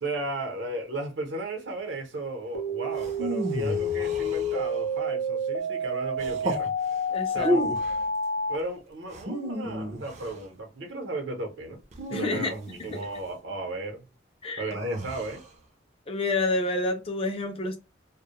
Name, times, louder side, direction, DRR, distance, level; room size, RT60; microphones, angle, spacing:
voice 1, 0.0-6.7 7.3-7.6 8.5-11.8 12.1-14.1 14.6-15.4, right 2 dB, 70° right, 0.8 m, -35 dB
sound 1, 2.5-8.6, left 1 dB, 85° left, 0.5 m, -29 dB
sound 2, 2.9-4.9 6.2-6.7 7.3-8.0 9.1-10.4 11.9-13.1 14.7-15.5, right 1 dB, 35° right, 0.5 m, -32 dB
voice 2, 7.1-7.5 12.1-12.5 12.9-13.0 14.4-14.7 16.1-17.8, left 2 dB, 30° left, 0.4 m, -28 dB
2.2 x 2.1 x 2.9 m
head